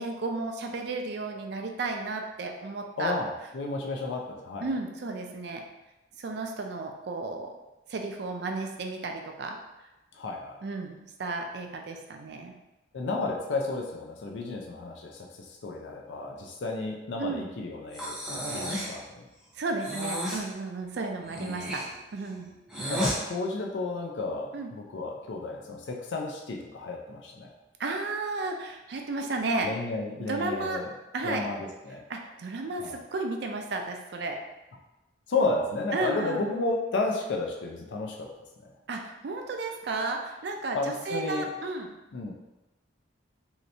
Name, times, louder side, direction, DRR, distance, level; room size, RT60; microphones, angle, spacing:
voice 1, 0.0-3.2 4.6-5.6 6.2-7.6 7.9-9.6 10.6-12.5 17.2-17.5 18.5-18.7 19.6-21.9 22.1-22.6 24.5-24.7 27.8-29.8 30.3-30.8 31.1-31.5 32.1-34.4 35.9-36.6 38.9-41.9, right 3 dB, 65° right, 3 dB, 0.4 m, -33 dB
voice 2, 3.0-4.8 10.1-10.6 12.9-19.3 21.4-21.7 22.9-27.5 29.6-30.9 31.2-32.0 32.8-33.0 35.3-38.3 38.6-38.7 40.7-41.5 42.1-42.3, left 3 dB, 75° left, 1 dB, 0.5 m, -32 dB
Breathing, 17.9-19.0 19.8-20.5 21.2-23.2, equal, 5° right, 0.6 m, -33 dB
3.1 x 2.8 x 2.6 m, 1.0 s
head